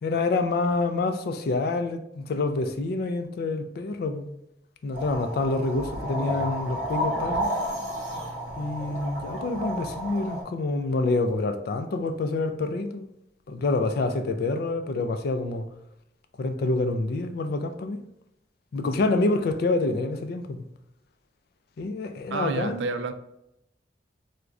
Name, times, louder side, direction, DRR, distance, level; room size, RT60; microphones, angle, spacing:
voice 1, 0.0-4.3 4.8-7.5 8.6-13.1 13.5-15.7 16.4-18.0 18.7-20.6 21.8-22.8, left 3 dB, 60° left, 0.3 m, -27 dB
sound 1, 4.9-10.4, equal, 45° right, 1.3 m, -31 dB
voice 2, 22.3-23.1, right 4 dB, 80° right, 0.3 m, -29 dB
4.6 x 2.1 x 2.5 m
head